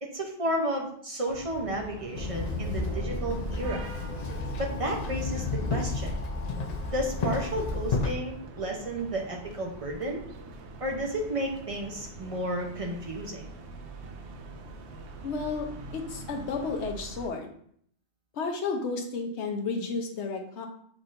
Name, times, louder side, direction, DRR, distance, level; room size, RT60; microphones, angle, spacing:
voice 1, 0.0-3.9 4.6-5.4 5.7-6.2 6.9-10.2 10.8-13.4, right 1 dB, 35° right, 0 dB, 0.7 m, -32 dB
sound 1, 1.3-17.3, right 3 dB, 70° right, 0.9 m, -44 dB
Walk footsteps / Chatter / Hiss, 2.1-8.1, left 3 dB, 50° left, 0.5 m, -31 dB
voice 2, 15.2-15.7 15.9-17.5 18.3-20.7, left 4 dB, 70° left, 4 dB, 1.0 m, -32 dB
5.9 x 3.6 x 2.5 m, 0.64 s
omnidirectional pair, 1.2 m